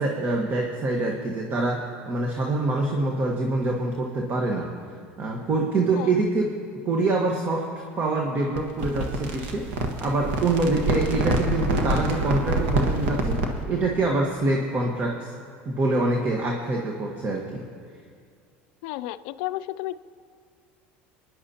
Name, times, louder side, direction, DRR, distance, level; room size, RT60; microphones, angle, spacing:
voice 1, 0.0-4.7 5.2-6.5 6.8-7.7 8.0-15.3 15.6-17.6, right 2 dB, 35° right, 1 dB, 1.3 m, -25 dB
sound 1, 8.5-13.6, right 1 dB, 75° right, 1.5 m, -26 dB
voice 2, 18.8-20.0, left 16 dB, 75° left, 14 dB, 0.4 m, -32 dB
28.0 x 10.5 x 2.9 m, 2.2 s
supercardioid pair, 105°, 6 cm